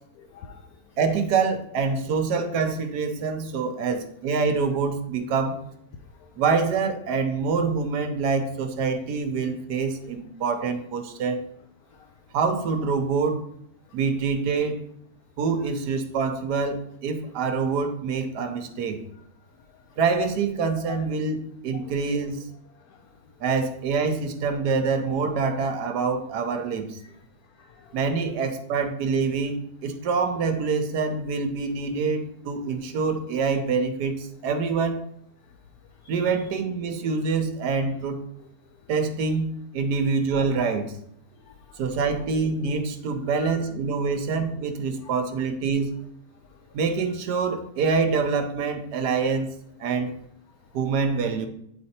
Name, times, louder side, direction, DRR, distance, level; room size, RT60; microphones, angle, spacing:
voice 1, 0.1-1.0 3.6-4.0 6.0-6.4 11.9-12.2 13.9-14.0 19.7-20.0 20.9-21.0 21.7-22.0 22.7-23.3 27.0-27.2 27.5-28.0 35.5-35.6 36.0-36.5 38.8-38.9 41.3-41.8 43.3-43.5 45.0-45.1 46.4-46.8, left 7 dB, 70° left, 6 dB, 1.1 m, -48 dB
voice 2, 1.0-5.6 6.4-11.4 12.3-13.4 13.9-14.8 15.4-19.0 20.0-21.4 21.6-22.4 23.4-27.0 27.9-35.0 36.1-38.2 38.9-39.5 39.7-41.0 41.8-45.9 46.7-49.5 49.8-50.1 50.7-51.5, right 5 dB, 85° right, 7 dB, 1.4 m, -25 dB
9.2 x 4.3 x 4.3 m, 0.73 s
omnidirectional pair, 1.7 m